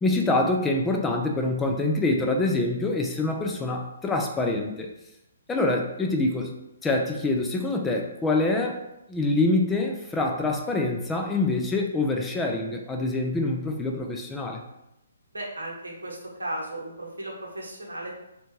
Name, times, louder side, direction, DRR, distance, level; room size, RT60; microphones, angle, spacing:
voice 1, 0.0-4.9 5.5-6.5 6.8-8.8 9.1-14.6, left 2 dB, 10° left, 2 dB, 0.3 m, -25 dB
voice 2, 15.3-18.1, right 1 dB, 85° right, -2 dB, 0.8 m, -35 dB
2.7 x 2.1 x 3.0 m, 0.87 s
figure-of-eight pair, 140°, 0 cm